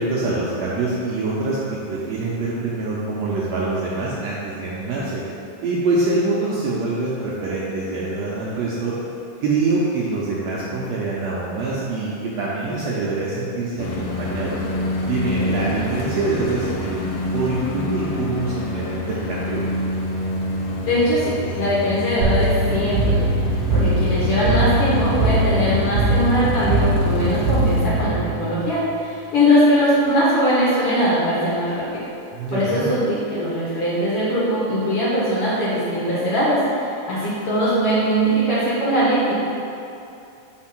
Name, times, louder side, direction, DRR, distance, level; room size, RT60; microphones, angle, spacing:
voice 1, 0.0-5.2 5.6-8.9 9.4-14.6 15.0-17.0 17.3-19.6 32.3-32.9, right 3 dB, 75° right, -6 dB, 1.6 m, -25 dB
sound 1, 13.8-27.9, left 2 dB, 75° left, 1.4 m, -27 dB
voice 2, 20.9-23.3 23.7-32.1 32.5-39.3, equal, 55° left, -9 dB, 1.8 m, -21 dB
sound 2, 22.2-28.8, right 2 dB, 55° right, 1.4 m, -21 dB
4.7 x 4.4 x 6.0 m, 2.6 s
omnidirectional pair, 3.6 m